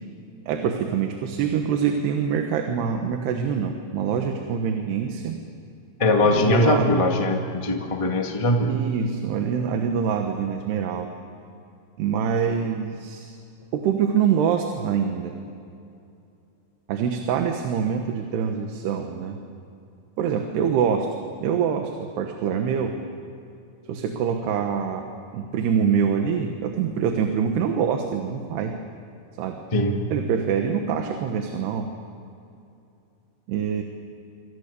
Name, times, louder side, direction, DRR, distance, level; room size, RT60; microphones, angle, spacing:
voice 1, 0.5-5.4 6.2-6.9 8.7-11.1 12.0-13.4 13.7-15.4 16.9-19.4 20.2-21.1 21.4-23.0 23.9-25.1 25.3-28.8 29.4-29.6 30.1-31.9 33.5-33.8, right 7 dB, 90° right, 4 dB, 3.5 m, -25 dB
voice 2, 6.0-8.7 29.7-30.0, left 2 dB, 25° left, 2 dB, 0.6 m, -21 dB
26.5 x 26.0 x 6.9 m, 2.6 s
omnidirectional pair, 4.6 m